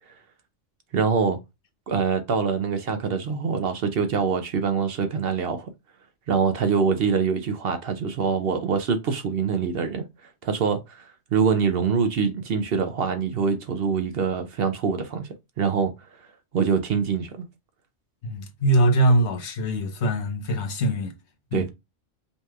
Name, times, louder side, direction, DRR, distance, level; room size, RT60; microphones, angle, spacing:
voice 1, 0.9-1.4 1.9-5.7 6.3-15.9 16.5-17.4 21.5-21.7, right 5 dB, 60° right, 0.8 m, -24 dB
voice 2, 18.2-21.1 21.5-21.7, right 1 dB, 70° left, 1.1 m, -22 dB
5.3 x 3.1 x 2.3 m
omnidirectional pair, 1.2 m